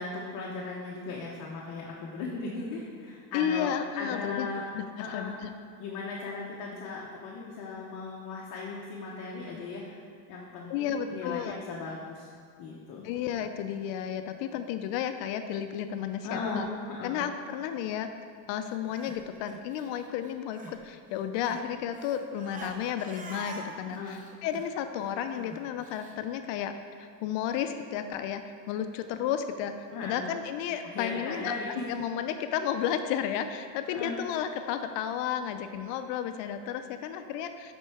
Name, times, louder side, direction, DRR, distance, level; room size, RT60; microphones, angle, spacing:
voice 1, 0.0-4.7 5.0-5.3 5.8-12.3 12.6-13.0 16.2-17.3 23.9-24.2 29.9-30.3 30.8-31.8 33.9-34.1, left 3 dB, 45° left, -3 dB, 0.8 m, -37 dB
voice 2, 3.3-4.5 4.7-5.5 10.7-11.6 13.0-16.7 17.0-18.1 18.5-28.4 28.7-29.7 30.0-31.5 31.9-37.7, left 9 dB, 65° left, 8 dB, 0.5 m, -32 dB
Crying sobbing, 18.7-20.8 21.1-26.1, right 2 dB, 20° right, 0.5 m, -45 dB
7.4 x 4.5 x 4.7 m, 2.1 s
cardioid pair, 155°, 47 cm